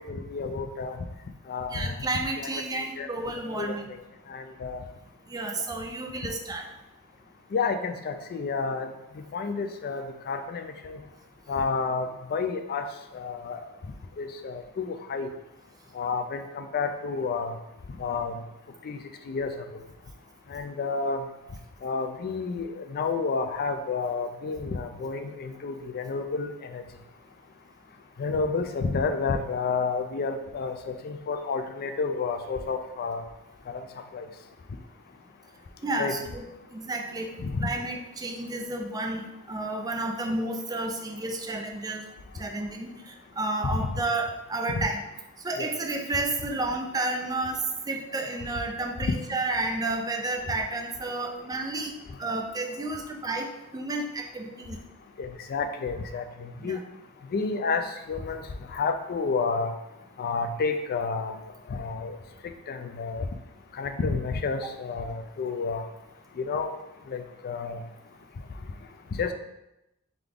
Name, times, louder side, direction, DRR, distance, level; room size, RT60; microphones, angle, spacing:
voice 1, 0.1-1.0 1.5-1.9 2.4-2.5 2.7-3.1 3.6-3.8 4.3-4.8 7.5-8.9 9.3-11.0 11.5-12.8 13.1-13.6 14.2-15.3 16.0-17.5 18.0-18.4 18.9-19.0 19.3-19.5 20.5-21.2 21.8-26.8 28.2-33.2 33.7-33.8 34.1-34.3 36.0-36.2 37.4-37.5 45.6-45.7 49.0-49.1 55.2-56.8 57.3-58.4 58.7-59.7 60.2-61.4 61.7-62.2 62.7-63.3 63.8-65.8 66.4-66.8 67.1-67.8 69.2-69.3, left 4 dB, 45° left, 7 dB, 0.4 m, -30 dB
voice 2, 1.7-3.9 5.3-6.7 21.4-21.5 35.8-42.1 42.4-45.1 45.4-51.9 52.2-54.8 56.6-56.8, right 2 dB, 15° right, 3 dB, 0.4 m, -31 dB
3.8 x 3.5 x 3.4 m, 0.91 s
head